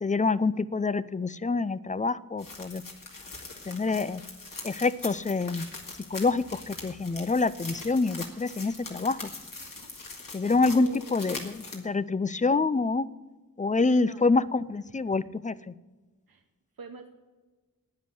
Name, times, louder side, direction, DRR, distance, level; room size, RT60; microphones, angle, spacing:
voice 1, 0.0-2.8 3.7-4.2 4.6-5.7 6.1-9.3 10.3-13.1 13.6-15.7, left 3 dB, 20° left, 18 dB, 0.5 m, -26 dB
sound 1, 2.4-11.8, left 3 dB, 70° left, 2.3 m, -42 dB
voice 2, 10.7-11.2 14.0-14.3 16.3-16.4 16.8-17.1, right 4 dB, 85° right, 5 dB, 0.9 m, -42 dB
10.5 x 9.5 x 8.2 m, 1.3 s
wide cardioid pair, 60°, 34 cm